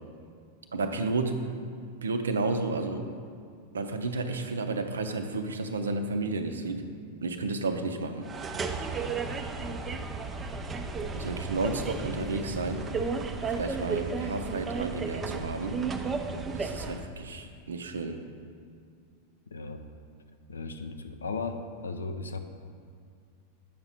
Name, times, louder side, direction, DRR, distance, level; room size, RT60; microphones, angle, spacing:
voice 1, 0.7-1.5 2.0-3.1 3.7-6.9 7.2-8.3 11.1-12.9 13.4-15.9 16.5-18.2, right 3 dB, 70° right, 6 dB, 0.6 m, -32 dB
sound 1, 8.2-17.1, right 4 dB, 20° right, 0.5 m, -33 dB
voice 2, 19.5-19.8 20.5-22.4, left 4 dB, 70° left, 7 dB, 0.5 m, -36 dB
8.6 x 5.9 x 4.1 m, 2.2 s
figure-of-eight pair, 90°, 0 cm